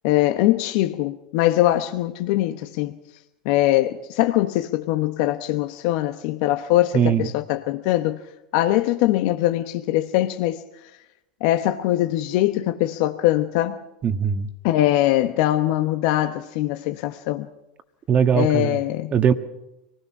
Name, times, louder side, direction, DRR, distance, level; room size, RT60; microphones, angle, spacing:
voice 1, 0.0-3.0 3.4-8.2 8.5-10.9 11.4-13.8 14.6-17.5 18.3-19.1, left 14 dB, 60° left, 1.0 m, -22 dB
voice 2, 6.9-7.3 14.0-14.5 18.1-18.8 19.1-19.3, right 7 dB, 35° right, 1.6 m, -20 dB
24.5 x 20.0 x 6.0 m
hypercardioid pair, 105°, 4 cm